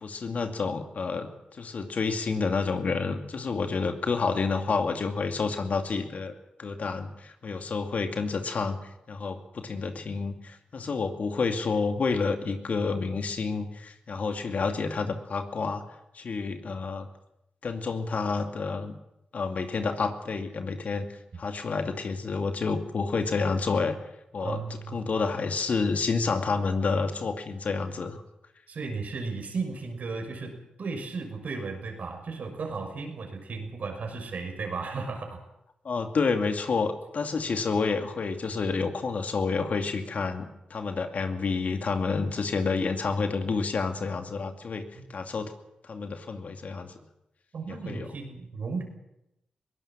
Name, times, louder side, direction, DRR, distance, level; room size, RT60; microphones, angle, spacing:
voice 1, 0.0-6.3 6.6-8.8 9.1-15.8 16.1-17.1 17.6-19.0 19.3-21.1 21.4-24.0 24.3-24.6 24.9-28.2 35.8-45.5 45.8-46.9 47.7-48.1, left 4 dB, 65° left, 6 dB, 2.5 m, -29 dB
voice 2, 24.4-25.1 28.7-35.4 45.0-45.1 47.5-48.8, right 4 dB, 65° right, 4 dB, 6.0 m, -35 dB
21.5 x 17.5 x 7.5 m, 0.85 s
supercardioid pair, 40°, 3 cm